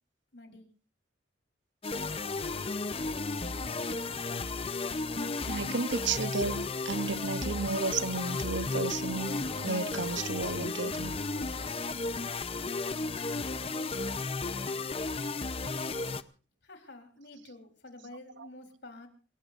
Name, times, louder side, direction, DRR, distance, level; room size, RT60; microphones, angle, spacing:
voice 1, 0.3-0.7 15.7-16.0 16.6-19.1, left 2 dB, 70° left, 3.9 m, -49 dB
sound 1, 1.8-16.2, left 3 dB, 30° left, 0.7 m, -34 dB
voice 2, 5.5-11.2, right 4 dB, 80° right, 0.8 m, -33 dB
27.0 x 18.0 x 2.6 m
head